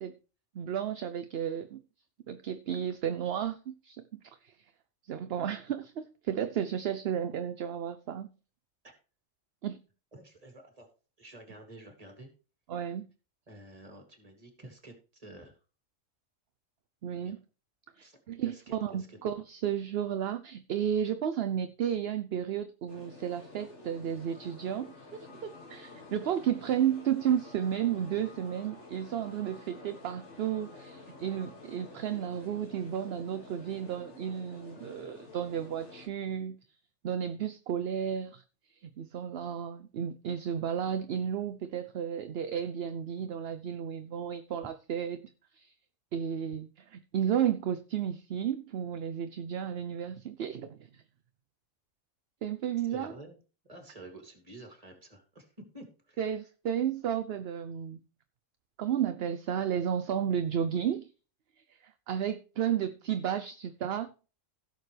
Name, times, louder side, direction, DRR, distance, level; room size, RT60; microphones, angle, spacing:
voice 1, 0.5-1.8 2.3-4.0 4.4-4.5 5.1-8.3 9.6-9.8 12.7-13.1 17.0-17.4 18.0-36.6 37.0-38.4 38.7-45.2 45.5-45.7 46.1-51.0 52.4-53.1 56.2-58.0 58.8-61.1 61.7-64.1, right 9 dB, 60° right, 0.8 m, -33 dB
voice 2, 10.1-10.9 11.2-12.3 13.5-15.6 17.2-17.4 18.0-19.2 52.9-53.4 53.6-55.5 55.7-56.3, right 2 dB, 30° right, 2.7 m, -50 dB
sound 1, 22.9-36.1, left 2 dB, 60° left, 2.6 m, -51 dB
sound 2, 24.2-33.9, left 3 dB, 75° left, 2.4 m, -57 dB
16.0 x 6.6 x 3.3 m
omnidirectional pair, 1.3 m